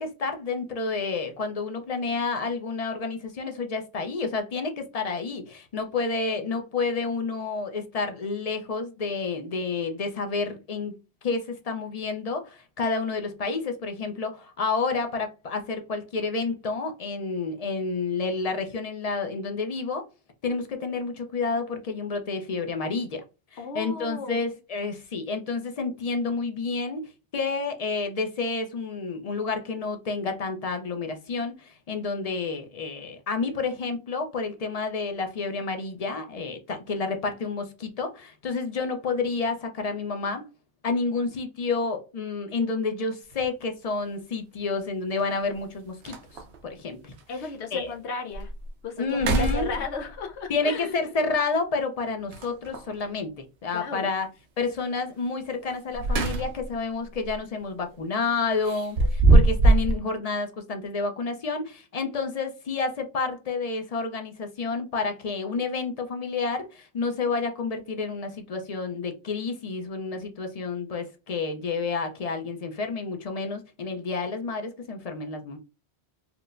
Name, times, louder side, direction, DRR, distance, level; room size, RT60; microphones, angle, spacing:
voice 1, 0.0-10.9 11.2-20.0 20.4-23.2 23.5-40.4 40.8-46.2 46.6-47.1 47.7-47.9 49.0-49.7 50.5-54.3 54.6-75.6, left 4 dB, 45° left, 0.5 m, -30 dB
voice 2, 23.6-24.4 47.3-48.5 48.8-51.0 53.7-54.1, left 4 dB, 80° left, 1.0 m, -34 dB
sound 1, 43.3-43.4 45.2-45.3 45.7-45.8 46.0-46.6 47.2-47.3 47.8-47.9 48.3-48.7 49.1-50.2 52.3-52.9 55.7-56.8 57.1-57.4 58.6-60.0, right 2 dB, 75° right, 0.9 m, -22 dB
4.5 x 2.1 x 2.4 m
omnidirectional pair, 1.1 m